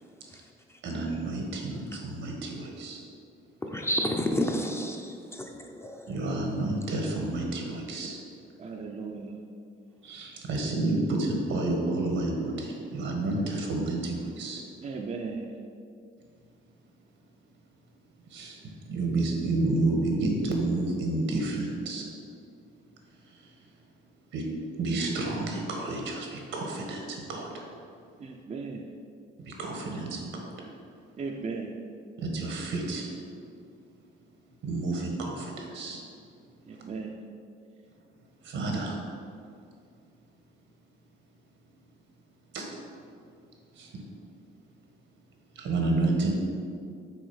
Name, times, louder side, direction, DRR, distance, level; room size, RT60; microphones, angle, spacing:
voice 1, 0.8-3.0 6.1-8.2 10.0-14.6 18.3-22.0 23.3-23.5 24.3-24.4 24.8-27.5 29.4-30.5 32.2-33.1 34.6-36.0 36.7-36.8 38.4-39.0 42.5-42.6 43.7-44.0 45.5-46.3, right 2 dB, 80° right, 1 dB, 1.4 m, -30 dB
voice 2, 3.6-6.1, equal, 15° left, 2 dB, 0.7 m, -31 dB
voice 3, 8.6-9.4 14.8-15.5 28.2-28.9 31.2-31.8 36.6-37.2, right 4 dB, 35° right, 0 dB, 0.6 m, -37 dB
6.1 x 3.9 x 5.6 m, 2.3 s
cardioid pair, 90°, 20 cm